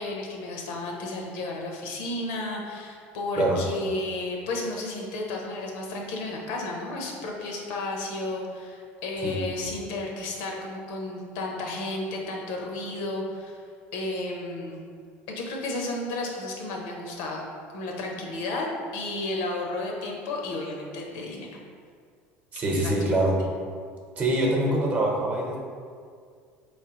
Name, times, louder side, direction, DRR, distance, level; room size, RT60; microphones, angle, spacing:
voice 1, 0.0-13.6 13.9-14.8 15.3-17.4 17.7-18.7 18.9-21.5 22.8-22.9, left 2 dB, 80° left, 0 dB, 0.8 m, -32 dB
voice 2, 22.5-23.4 24.2-25.6, right 1 dB, 30° right, -1 dB, 0.8 m, -24 dB
4.2 x 3.2 x 3.0 m, 2.1 s
supercardioid pair, 120°, 5 cm